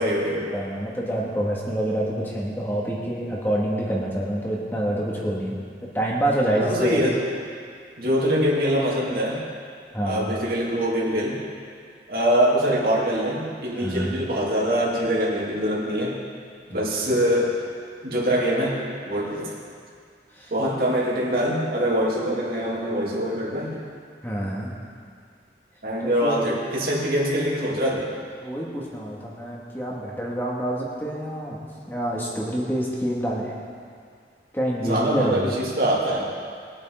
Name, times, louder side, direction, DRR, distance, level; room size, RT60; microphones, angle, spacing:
voice 1, 0.0-0.5 6.6-7.1 8.0-9.4 10.0-11.4 12.1-16.2 16.7-17.5 18.0-18.8 19.1-19.5 20.5-23.7 25.8-28.1 34.8-36.2, equal, 55° right, -5 dB, 2.8 m, -23 dB
voice 2, 0.5-7.0 9.9-10.3 13.7-14.2 16.7-16.9 20.3-20.5 24.2-24.8 26.0-26.5 28.4-33.5 34.5-35.6, right 1 dB, 10° left, -4 dB, 2.1 m, -27 dB
22.0 x 8.7 x 3.9 m, 2.2 s
head